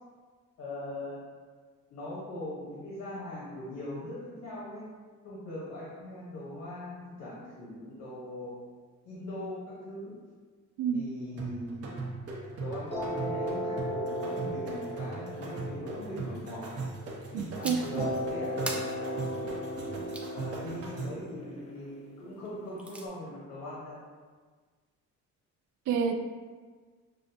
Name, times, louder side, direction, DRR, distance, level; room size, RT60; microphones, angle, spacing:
voice 1, 0.6-1.3 1.9-4.9 5.2-8.6 9.0-10.1 10.9-11.9 12.6-12.9 13.2-16.6 17.3-18.0 18.3-18.6 20.3-24.0, left 1 dB, 90° left, -8 dB, 1.1 m, -40 dB
sound 1, 11.4-21.3, right 3 dB, 50° right, 0.8 m, -39 dB
sound 2, 12.9-17.3 18.0-22.9, equal, 20° left, 0.7 m, -36 dB
voice 2, 17.3-18.1 25.9-26.1, right 6 dB, 70° right, 6 dB, 0.4 m, -29 dB
sound 3, 17.6-18.0 18.7-20.3 22.4-23.1, right 1 dB, 5° right, 0.3 m, -40 dB
6.1 x 2.2 x 2.6 m, 1.5 s
cardioid pair, 125°, 30 cm